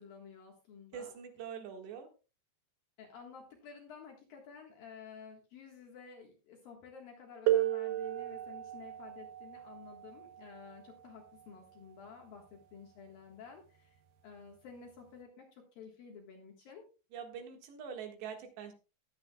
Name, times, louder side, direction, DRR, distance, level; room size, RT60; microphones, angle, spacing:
voice 1, 0.0-1.1 3.0-16.8, left 6 dB, 60° left, 1 dB, 2.7 m, -52 dB
voice 2, 0.9-2.1 17.1-18.7, right 7 dB, 70° right, 4 dB, 3.7 m, -44 dB
sound 1, 7.5-12.9 14.0-14.1 14.9-15.1, right 13 dB, 90° right, 1.9 m, -36 dB
20.0 x 8.1 x 2.3 m, 0.32 s
omnidirectional pair, 5.5 m